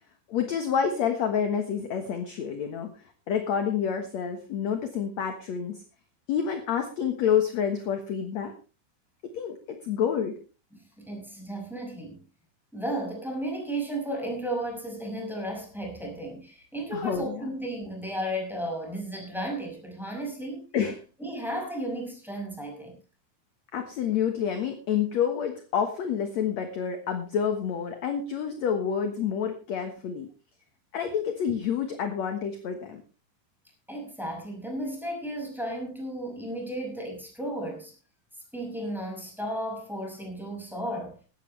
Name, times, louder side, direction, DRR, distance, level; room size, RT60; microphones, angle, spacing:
voice 1, 0.3-5.8 6.3-8.5 9.2-10.3 16.9-17.5 20.7-21.0 23.7-30.3 30.9-33.0, left 8 dB, 60° left, 6 dB, 2.0 m, -28 dB
voice 2, 10.7-12.2 12.7-20.7 21.2-23.0 33.9-37.9 38.5-41.2, right 1 dB, ahead, 0 dB, 5.7 m, -34 dB
17.5 x 12.5 x 3.3 m, 0.33 s
omnidirectional pair, 4.8 m